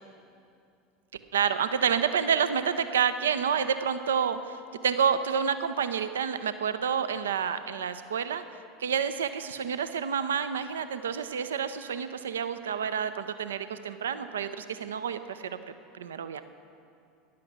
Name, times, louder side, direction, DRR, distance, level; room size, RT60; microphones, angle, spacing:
voice 1, 1.3-4.6 4.8-8.4 8.8-15.4 15.9-16.4, right 7 dB, 70° right, 12 dB, 0.5 m, -29 dB
14.5 x 10.5 x 6.1 m, 2.5 s
figure-of-eight pair, 75°, 0 cm